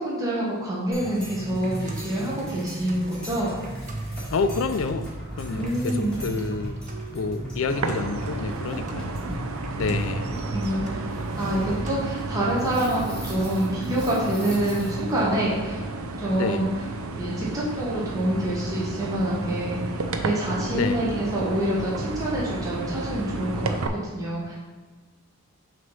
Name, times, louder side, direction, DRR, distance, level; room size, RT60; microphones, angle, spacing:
voice 1, 0.0-3.5 5.5-6.2 10.4-15.8 16.2-16.7 17.1-19.8 20.2-24.5, right 1 dB, 15° right, -7 dB, 1.0 m, -27 dB
sound 1, 0.9-15.2, equal, 5° left, 1.5 m, -41 dB
sound 2, 1.0-11.9, right 2 dB, 35° right, 0.6 m, -36 dB
voice 2, 4.3-6.8 7.1-9.2 9.8-10.4 16.3-16.7 20.7-21.0, left 4 dB, 65° left, 10 dB, 0.4 m, -28 dB
sound 3, 7.7-23.9, right 2 dB, 75° right, 0.5 m, -32 dB
6.1 x 3.0 x 5.4 m, 1.4 s
head